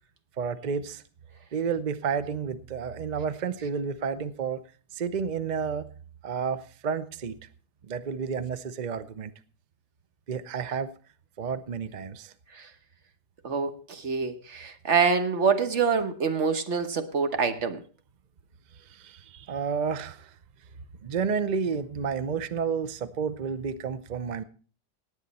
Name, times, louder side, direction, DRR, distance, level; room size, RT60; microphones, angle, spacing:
voice 1, 0.4-1.0 1.5-4.6 4.9-5.9 6.2-7.4 7.9-9.3 10.3-10.9 11.4-12.3 18.9-20.3 21.0-24.4, right 6 dB, 70° right, 0.4 m, -31 dB
voice 2, 13.4-17.8, right 5 dB, 45° right, 1.3 m, -26 dB
18.0 x 8.9 x 4.2 m
omnidirectional pair, 1.8 m